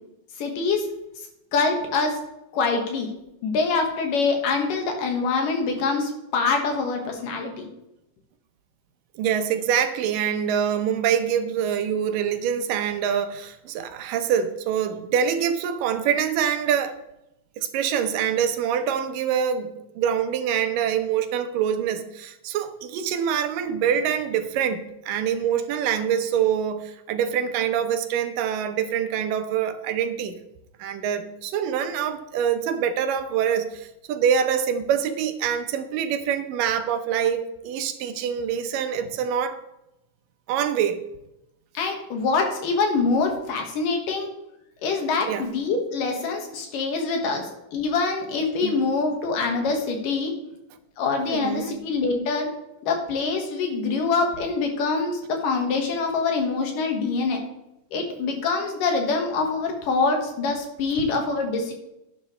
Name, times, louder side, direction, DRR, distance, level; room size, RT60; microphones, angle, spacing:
voice 1, 0.4-0.9 1.5-2.2 2.5-3.1 3.4-7.5 41.7-44.3 44.8-50.3 51.0-52.5 52.8-57.4 57.9-61.7, left 4 dB, 80° left, 3 dB, 3.3 m, -25 dB
voice 2, 9.2-17.0 17.6-30.4 30.8-39.6 40.5-41.0 45.3-45.5 48.6-48.7 51.3-51.8, right 8 dB, 85° right, 9 dB, 2.6 m, -25 dB
11.0 x 10.5 x 3.3 m, 0.87 s
omnidirectional pair, 3.8 m